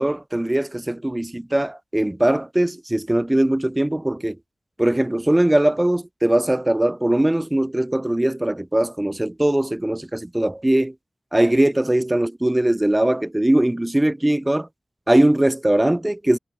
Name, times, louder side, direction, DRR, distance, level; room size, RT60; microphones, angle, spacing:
voice 1, 0.0-4.4 4.8-10.9 11.3-14.7 15.1-16.4, right 1 dB, 15° right, 0.3 m, -20 dB
wide cardioid pair, 115°, 0 cm